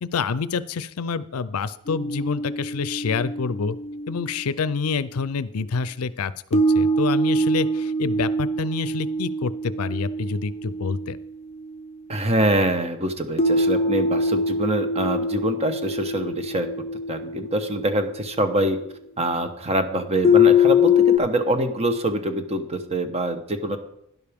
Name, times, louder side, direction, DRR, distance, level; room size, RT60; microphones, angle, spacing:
voice 1, 0.0-3.8 4.1-11.2, left 5 dB, 75° left, 16 dB, 0.5 m, -27 dB
sound 1, 1.9-5.1 6.5-12.0 13.4-18.8 20.2-21.2, left 3 dB, 30° left, 0.6 m, -24 dB
voice 2, 12.1-16.7 17.1-18.8 19.2-23.8, right 1 dB, 30° right, 7 dB, 1.0 m, -24 dB
11.5 x 11.0 x 3.6 m, 0.75 s
head